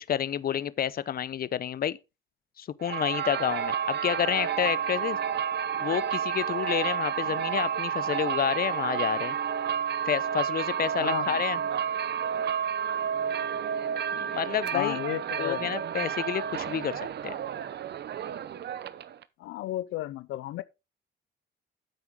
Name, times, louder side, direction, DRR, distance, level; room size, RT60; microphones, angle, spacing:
voice 1, 0.1-2.0 2.6-5.2 5.8-9.4 10.1-11.6 14.1-15.0 15.4-17.4, left 9 dB, 50° left, 0.7 m, -29 dB
sound 1, 2.8-19.2, right 8 dB, 55° right, 0.8 m, -30 dB
voice 2, 11.0-11.4 14.7-15.7 19.4-20.6, left 14 dB, 90° left, 0.6 m, -33 dB
9.2 x 8.0 x 3.7 m
cardioid pair, 90°, 20 cm